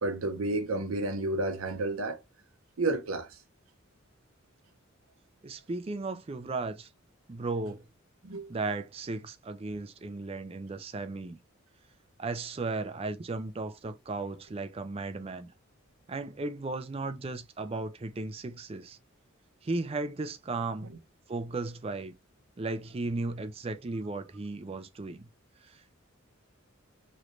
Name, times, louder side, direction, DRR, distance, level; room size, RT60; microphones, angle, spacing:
voice 1, 0.0-2.2 2.8-3.3 8.2-8.5, right 2 dB, 90° right, 0.7 m, -30 dB
voice 2, 5.4-6.9 7.3-7.8 8.5-11.4 12.2-15.5 16.1-19.0 19.6-20.9 21.3-22.1 22.6-25.3 25.7-26.0, right 3 dB, 30° right, 0.4 m, -35 dB
3.2 x 3.1 x 2.5 m
head